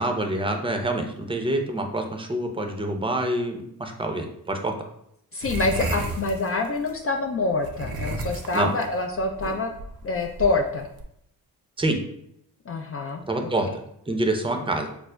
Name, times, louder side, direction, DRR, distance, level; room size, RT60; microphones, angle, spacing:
voice 1, 0.0-4.7 8.5-8.7 11.8-12.0 13.3-13.7 14.1-14.9, right 1 dB, 15° right, 4 dB, 0.6 m, -26 dB
voice 2, 5.3-9.7 10.0-10.9 12.7-13.2 13.6-13.7, left 3 dB, 35° left, 3 dB, 0.4 m, -26 dB
sound 1, 5.4-6.9 7.6-11.0, right 2 dB, 65° right, 0.6 m, -33 dB
4.9 x 2.0 x 2.2 m, 0.75 s
supercardioid pair, 40°, 39 cm